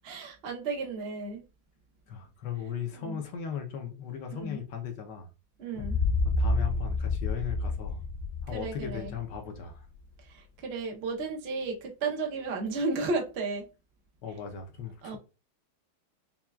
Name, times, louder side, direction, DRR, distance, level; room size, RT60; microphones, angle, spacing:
voice 1, 0.0-1.4 3.0-3.2 4.3-4.6 5.6-6.0 8.5-9.1 10.2-13.6 15.0-15.2, right 3 dB, 85° right, 0.5 m, -33 dB
voice 2, 2.1-5.3 6.2-8.0 8.4-9.8 14.2-15.2, left 8 dB, 70° left, 1.1 m, -37 dB
sound 1, 5.8-9.6, left 3 dB, 90° left, 1.5 m, -29 dB
5.6 x 2.3 x 2.3 m
omnidirectional pair, 2.3 m